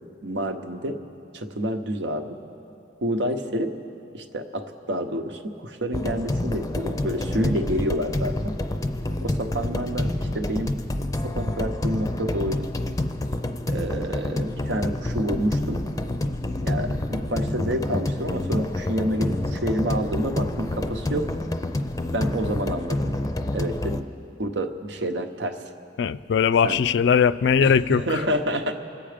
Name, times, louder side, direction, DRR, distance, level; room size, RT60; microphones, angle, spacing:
voice 1, 0.2-1.0 1.3-2.4 3.0-3.7 4.1-8.5 9.2-10.7 11.2-12.7 13.7-15.8 16.6-21.3 22.1-23.1 23.5-24.1 24.4-25.6 26.6-26.8 27.6-28.7, equal, 85° right, 6 dB, 0.9 m, -28 dB
sound 1, 5.9-24.0, left 1 dB, 20° left, 0.5 m, -28 dB
voice 2, 26.0-28.0, left 7 dB, 75° left, 16 dB, 0.3 m, -19 dB
25.5 x 8.7 x 5.1 m, 2.9 s
head